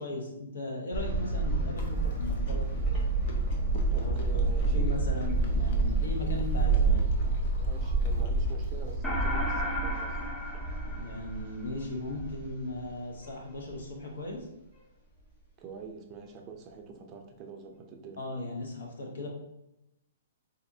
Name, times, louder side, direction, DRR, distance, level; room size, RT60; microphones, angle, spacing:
voice 1, 0.0-2.7 4.0-4.4 4.7-7.0 10.9-14.4 18.2-19.3, left 2 dB, 80° left, 0 dB, 1.0 m, -37 dB
sound 1, 0.9-12.9 13.2-13.3 13.7-13.8, right 3 dB, 30° left, 1.4 m, -28 dB
Chewing mastication, 1.8-9.0, left 1 dB, 50° left, 0.7 m, -50 dB
voice 2, 3.9-5.0 6.2-6.3 6.7-7.0 7.6-10.2 15.6-18.2, right 5 dB, 30° right, 2 dB, 0.5 m, -46 dB
sound 2, 9.0-11.7, left 1 dB, 10° left, 0.7 m, -35 dB
4.0 x 2.5 x 2.7 m, 0.88 s
hypercardioid pair, 140°, 0 cm